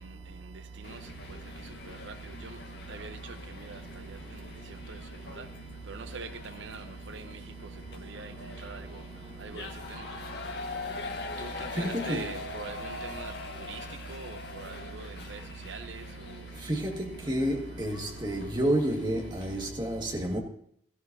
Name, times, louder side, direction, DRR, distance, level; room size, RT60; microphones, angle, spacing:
sound 1, 0.8-19.7, left 2 dB, 65° left, 1.5 m, -43 dB
voice 1, 5.9-6.3 6.6-6.8 7.1-7.2 8.1-8.3 8.6-8.8 9.4-10.0 11.4-13.3 13.7-13.8 14.1-15.4 15.7-16.0, right 4 dB, 80° right, 0.8 m, -41 dB
voice 2, 8.5-8.9 9.2-10.8 11.7-12.3 16.6-20.4, right 1 dB, 25° right, 1.8 m, -31 dB
17.0 x 14.5 x 2.7 m
head